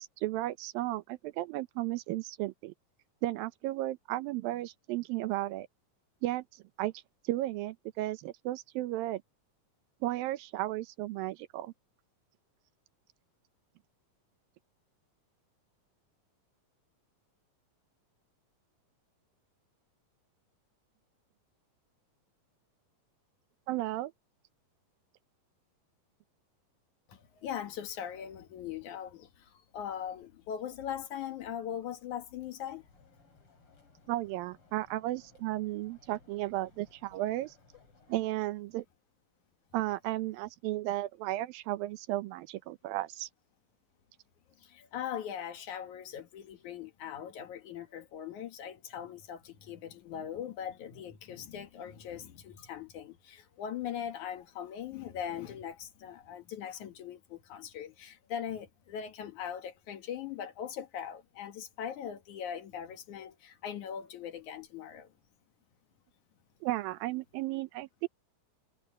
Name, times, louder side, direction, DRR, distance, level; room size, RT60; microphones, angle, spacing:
voice 1, 0.0-2.7 3.2-5.7 6.2-6.4 6.8-6.9 7.3-9.2 10.0-11.7 23.7-24.1 34.1-37.5 38.1-38.9 39.7-43.3 66.6-68.1, right 16 dB, 90° right, 2.6 m, -34 dB
voice 2, 27.1-32.8 44.6-65.1, left 9 dB, 65° left, 2.8 m, -40 dB
sound 1, 32.5-38.3, left 3 dB, 40° left, 6.5 m, -62 dB
omnidirectional pair, 4.0 m